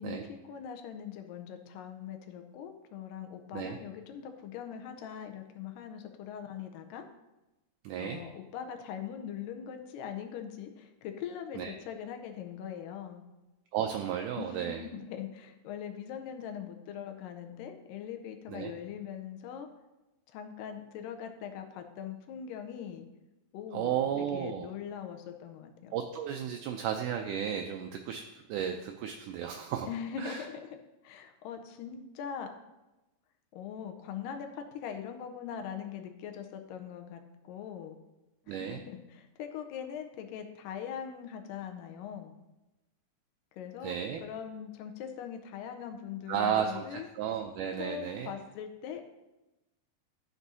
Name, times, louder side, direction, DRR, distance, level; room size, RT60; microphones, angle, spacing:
voice 1, 0.0-7.1 8.0-13.2 14.4-19.7 20.3-23.1 23.5-25.9 29.8-30.8 31.0-32.5 33.5-38.0 38.5-42.3 43.5-44.0 44.2-47.1 47.8-49.0, left 8 dB, 85° left, 6 dB, 2.3 m, -41 dB
voice 2, 7.8-8.2 11.6-11.7 13.7-14.8 18.5-18.7 23.7-24.7 25.9-28.2 28.5-29.9 30.2-30.4 38.5-38.8 43.8-44.2 46.3-48.3, right 9 dB, 80° right, 3 dB, 1.9 m, -33 dB
12.5 x 6.1 x 2.7 m, 1.0 s
omnidirectional pair, 4.0 m